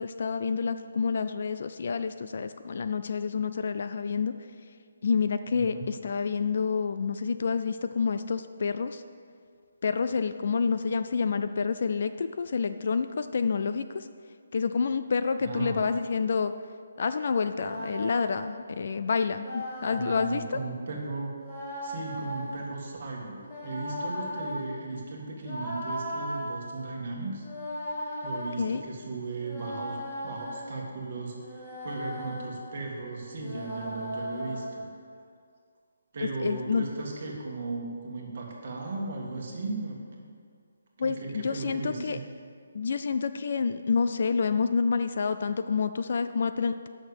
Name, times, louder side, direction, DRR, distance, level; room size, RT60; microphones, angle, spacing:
voice 1, 0.0-4.3 5.0-9.0 9.8-14.1 14.5-16.5 17.0-20.6 28.6-28.8 36.4-36.8 41.0-42.2 42.7-46.9, left 5 dB, 40° left, 11 dB, 0.3 m, -28 dB
voice 2, 5.5-5.9 15.4-15.8 19.9-21.3 21.8-27.5 28.2-30.0 30.2-34.9 36.1-40.3 41.0-42.2, right 3 dB, 35° right, -2 dB, 1.8 m, -36 dB
sound 1, 17.4-18.5 19.4-20.3 21.4-22.6 23.4-24.6 25.4-26.5 27.4-28.5 29.4-30.8 31.4-32.5 33.4-34.8, equal, 15° left, 1.8 m, -36 dB
9.2 x 6.5 x 6.7 m, 2.2 s
hypercardioid pair, 175°, 0 cm